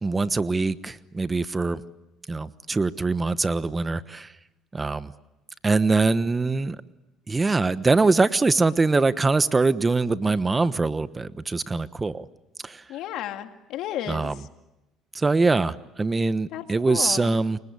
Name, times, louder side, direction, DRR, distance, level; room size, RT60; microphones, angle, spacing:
voice 1, 0.0-1.8 2.3-4.3 4.7-5.1 5.6-6.8 7.3-12.3 12.6-12.8 14.1-14.4 15.1-17.6, right 3 dB, 25° right, 14 dB, 1.2 m, -23 dB
voice 2, 12.9-14.3 16.5-17.3, left 11 dB, 70° left, 6 dB, 2.3 m, -33 dB
28.5 x 24.5 x 8.4 m, 0.95 s
supercardioid pair, 75°, 0 cm